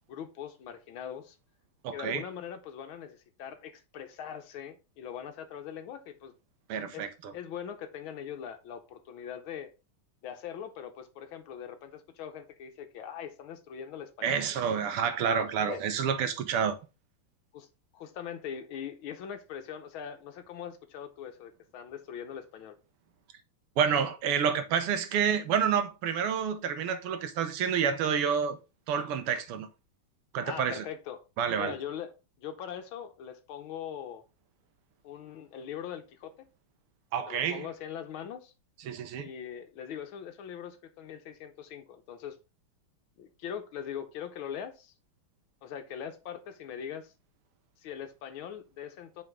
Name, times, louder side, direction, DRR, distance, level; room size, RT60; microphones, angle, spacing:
voice 1, 0.1-1.4 1.9-6.3 6.9-7.1 7.3-9.7 10.2-14.4 15.6-15.8 17.5-17.7 17.9-22.8 30.5-31.2 31.6-32.1 32.4-34.2 35.0-36.5 37.3-38.5 39.2-42.4 43.2-44.9 45.6-47.1 47.8-49.2, left 8 dB, 70° left, 1.6 m, -41 dB
voice 2, 1.8-2.2 6.7-7.3 14.2-16.8 23.8-28.6 28.9-29.7 30.3-30.9 31.4-31.8 37.1-37.7 38.9-39.3, right 7 dB, 85° right, 1.8 m, -29 dB
7.8 x 4.7 x 3.6 m
omnidirectional pair, 2.4 m